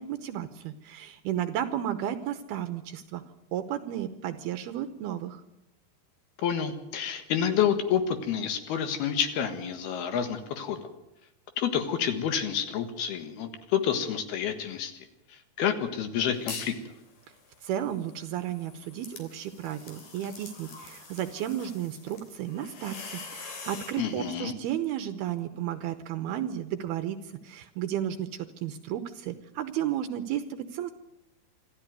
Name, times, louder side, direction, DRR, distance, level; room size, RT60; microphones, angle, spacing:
voice 1, 0.0-3.2 3.5-5.4 17.6-27.2 27.4-30.9, right 11 dB, 75° right, 11 dB, 2.5 m, -33 dB
voice 2, 6.4-10.9 11.6-14.9 15.3-16.8 24.0-24.5, left 8 dB, 65° left, 8 dB, 3.2 m, -29 dB
sound 1, 16.3-16.8 17.2-24.1, left 4 dB, 50° left, 4.4 m, -44 dB
26.0 x 13.5 x 9.4 m, 0.91 s
omnidirectional pair, 5.2 m